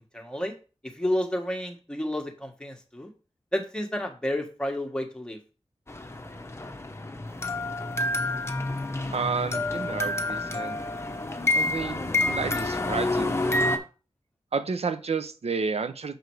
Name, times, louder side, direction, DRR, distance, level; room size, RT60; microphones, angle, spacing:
voice 1, 0.1-0.5 0.8-3.1 3.5-5.4, left 1 dB, 10° left, 3 dB, 1.5 m, -30 dB
sound 1, 5.9-13.8, left 2 dB, 25° left, 0.9 m, -28 dB
voice 2, 9.1-10.8 11.5-13.4 14.5-16.2, right 5 dB, 70° right, 11 dB, 0.7 m, -31 dB
6.5 x 4.8 x 4.7 m, 0.34 s
wide cardioid pair, 80°, 11 cm